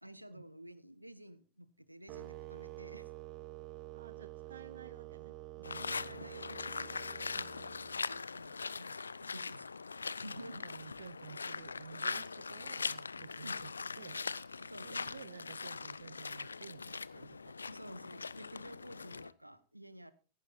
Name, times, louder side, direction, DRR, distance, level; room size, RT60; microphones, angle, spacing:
voice 1, 0.0-3.1 5.8-9.7 10.1-10.6 13.4-13.6 14.6-15.2 17.6-20.1, right 1 dB, 85° right, 15 dB, 1.2 m, -52 dB
sound 1, 2.1-8.2, right 17 dB, 40° right, 1.3 m, -49 dB
voice 2, 3.9-6.5 7.3-7.5 10.3-14.2 14.8-17.6, right 7 dB, 65° right, 16 dB, 0.7 m, -53 dB
sound 2, 5.6-19.3, left 4 dB, 75° left, 0.5 m, -41 dB
17.5 x 15.0 x 2.6 m, 0.36 s
figure-of-eight pair, 90°, 0 cm